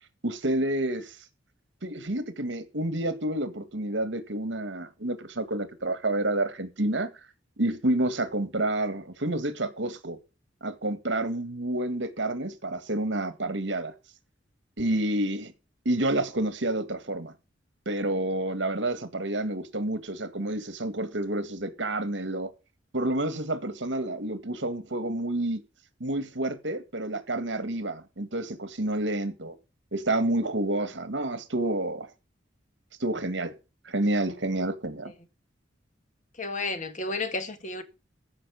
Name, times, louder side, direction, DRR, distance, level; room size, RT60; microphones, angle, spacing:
voice 1, 0.2-1.2 1.8-7.1 7.6-10.2 10.6-13.9 14.8-15.5 15.9-17.3 17.9-22.5 22.9-25.6 26.0-29.5 29.9-32.1 33.0-33.5 33.9-35.1, right 1 dB, 70° right, 1.9 m, -29 dB
voice 2, 36.4-37.8, left 3 dB, 40° left, 1.8 m, -32 dB
14.0 x 5.9 x 7.0 m
head